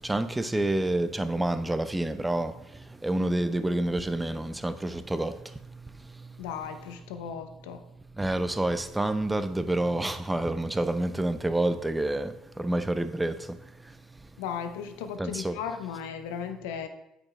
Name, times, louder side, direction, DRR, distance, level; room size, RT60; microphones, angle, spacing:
voice 1, 0.1-2.5 3.0-5.3 8.2-12.3 12.6-13.3 15.2-15.6, right 1 dB, 10° right, 0.6 m, -28 dB
voice 2, 6.4-7.8 14.4-16.9, left 7 dB, 80° left, 0.6 m, -36 dB
8.4 x 5.0 x 3.2 m
hypercardioid pair, 65°, 0 cm